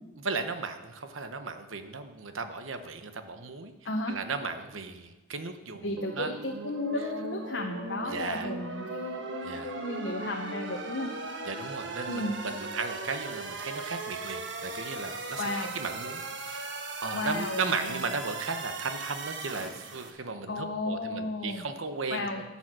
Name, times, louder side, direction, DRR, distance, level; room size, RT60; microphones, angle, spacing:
voice 1, 0.2-3.7 4.1-6.4 8.1-8.5 9.4-9.7 11.5-16.6 17.0-22.4, right 4 dB, 85° right, 8 dB, 1.0 m, -36 dB
voice 2, 3.8-4.2 5.8-11.1 12.1-12.4 15.4-15.7 17.1-18.0 20.5-21.7 22.1-22.4, left 2 dB, 60° left, 1 dB, 0.9 m, -34 dB
sound 1, 6.0-20.1, right 3 dB, 65° right, 1.2 m, -38 dB
12.5 x 7.2 x 6.1 m, 1.1 s
head